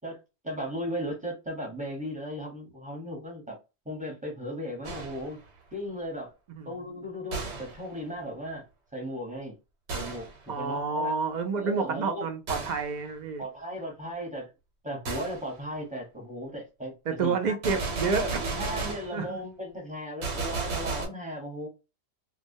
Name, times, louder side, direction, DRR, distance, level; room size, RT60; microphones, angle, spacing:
voice 1, 0.4-3.6 3.8-5.4 5.7-6.3 6.6-8.6 8.9-9.6 9.9-11.1 11.5-12.3 13.4-14.5 14.8-16.9 17.2-17.5 18.4-21.7, equal, 10° right, 0.8 m, -36 dB
Gunshot gunfire, 4.8-5.4 7.3-7.8 9.9-10.4 12.5-12.9 15.0-15.4 17.6-19.2 20.2-21.1, right 3 dB, 85° right, 1.0 m, -33 dB
voice 2, 6.5-7.0 10.5-13.4 17.1-18.4 19.1-19.4, right 4 dB, 55° right, 0.5 m, -29 dB
2.2 x 2.1 x 2.6 m
omnidirectional pair, 1.1 m